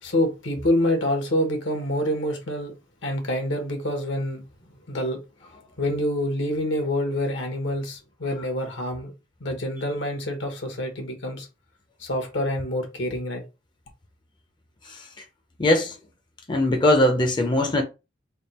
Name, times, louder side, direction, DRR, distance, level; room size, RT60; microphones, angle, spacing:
voice 1, 0.0-2.7 3.0-4.4 4.9-5.2 5.8-9.1 9.4-11.5 12.0-13.4, left 1 dB, 75° left, 1.2 m, -26 dB
voice 2, 15.6-15.9 16.5-17.8, left 1 dB, 25° left, 0.5 m, -20 dB
3.5 x 2.3 x 4.1 m
head